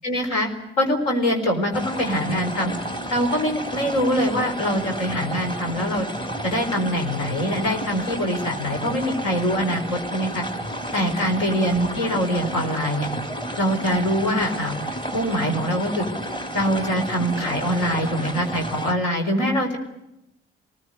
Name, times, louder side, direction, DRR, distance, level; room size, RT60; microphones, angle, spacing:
voice 1, 0.0-0.5 0.8-2.7 3.1-6.1 6.4-10.4 10.9-13.1 13.6-14.7 15.1-16.0 16.5-19.8, equal, 70° left, 4 dB, 4.3 m, -23 dB
sound 1, 1.7-18.9, right 1 dB, 15° left, 2.4 m, -31 dB
27.0 x 20.0 x 8.1 m, 0.88 s
figure-of-eight pair, 45°, 29 cm